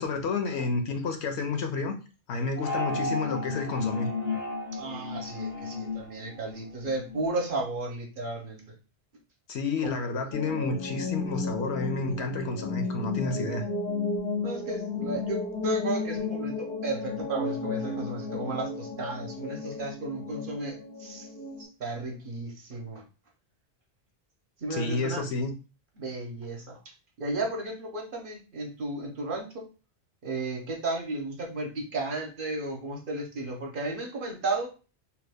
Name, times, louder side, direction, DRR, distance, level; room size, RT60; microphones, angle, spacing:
voice 1, 0.0-1.9 2.3-4.1 9.5-13.6 24.7-25.5, left 3 dB, 70° left, 5 dB, 0.8 m, -30 dB
sound 1, 2.6-7.2, left 3 dB, 90° left, 1.2 m, -33 dB
voice 2, 4.7-8.6 9.8-9.9 14.4-21.3 21.6-23.0 24.6-25.2 26.0-26.8 27.2-29.6 30.2-34.7, right 2 dB, 55° right, 1 dB, 0.8 m, -34 dB
sound 2, 10.3-21.6, left 3 dB, 10° left, 0.5 m, -33 dB
2.8 x 2.2 x 3.4 m, 0.33 s
omnidirectional pair, 1.2 m